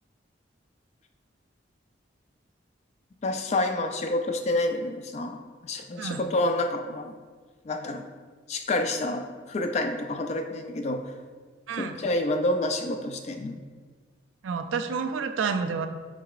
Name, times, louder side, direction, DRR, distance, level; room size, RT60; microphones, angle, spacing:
voice 1, 3.2-7.1 7.6-8.0 8.5-11.1 11.8-13.6, left 2 dB, 35° left, 6 dB, 0.3 m, -28 dB
voice 2, 6.0-6.3 11.7-12.0 14.4-15.9, right 5 dB, 90° right, 7 dB, 0.4 m, -29 dB
4.8 x 4.7 x 2.4 m, 1.5 s
head